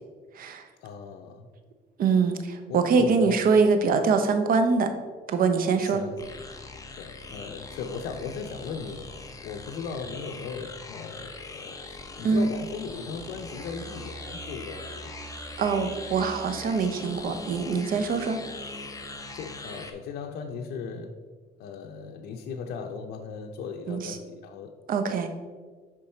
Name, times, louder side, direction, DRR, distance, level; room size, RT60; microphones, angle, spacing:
voice 1, 0.8-1.5 2.7-3.4 5.8-6.5 7.0-9.0 9.4-15.2 15.7-16.0 19.3-21.1 21.6-24.7, left 5 dB, 70° left, 3 dB, 0.7 m, -37 dB
voice 2, 2.0-4.9 5.3-6.0 12.2-12.5 15.6-18.4 23.9-24.2 24.9-25.3, right 5 dB, 55° right, 8 dB, 0.9 m, -23 dB
sound 1, 6.2-19.9, left 2 dB, 20° left, 0.8 m, -41 dB
9.9 x 3.9 x 4.4 m, 1.4 s
cardioid pair, 110°, 17 cm